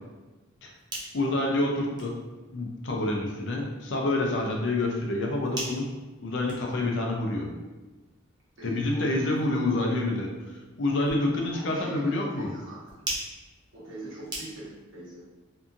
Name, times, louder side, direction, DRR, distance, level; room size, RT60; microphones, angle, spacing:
sound 1, 0.7-14.9, right 1 dB, 20° right, 0.5 m, -44 dB
voice 1, 1.1-2.1 2.5-5.9 6.2-7.5 8.6-10.3 10.8-12.5, left 2 dB, 65° left, 0 dB, 0.5 m, -27 dB
voice 2, 8.6-9.6 11.5-13.0 13.7-15.3, right 1 dB, 75° right, -7 dB, 1.0 m, -43 dB
2.7 x 2.5 x 2.5 m, 1.2 s
head